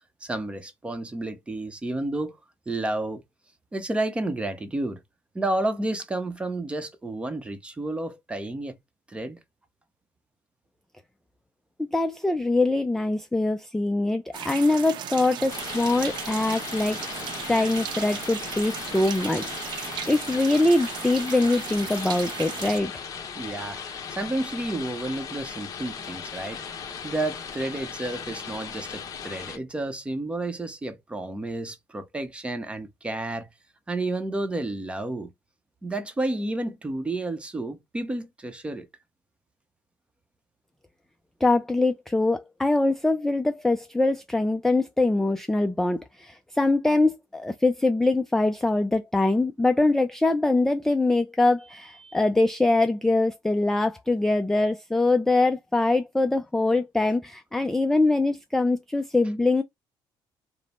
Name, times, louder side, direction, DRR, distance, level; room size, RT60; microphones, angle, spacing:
voice 1, 0.2-2.4 2.7-3.2 3.7-5.0 5.3-8.8 9.1-9.4 23.4-26.7 27.0-33.5 33.9-35.3 35.8-38.9, right 2 dB, 15° right, 0.7 m, -31 dB
voice 2, 11.8-17.0 17.5-23.0 41.4-59.6, left 2 dB, 5° left, 0.3 m, -23 dB
sound 1, 14.3-22.8, right 9 dB, 60° right, 0.7 m, -36 dB
sound 2, 15.5-29.6, left 7 dB, 40° left, 1.0 m, -37 dB
5.1 x 2.0 x 4.2 m
cardioid pair, 145°, 9 cm